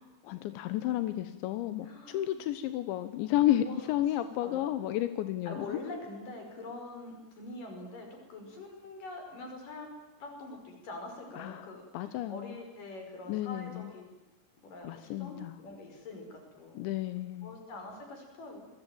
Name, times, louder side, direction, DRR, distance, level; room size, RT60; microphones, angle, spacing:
voice 1, 0.0-5.8 11.4-12.6 13.3-13.9 14.8-15.6 16.8-17.6, left 13 dB, 90° left, 11 dB, 3.4 m, -32 dB
voice 2, 1.8-2.4 3.6-3.8 4.4-4.7 5.5-9.9 10.2-11.8 12.3-14.0 14.6-16.8 17.4-18.7, left 2 dB, 50° left, 3 dB, 7.1 m, -44 dB
28.0 x 21.0 x 9.3 m, 1.0 s
omnidirectional pair, 5.1 m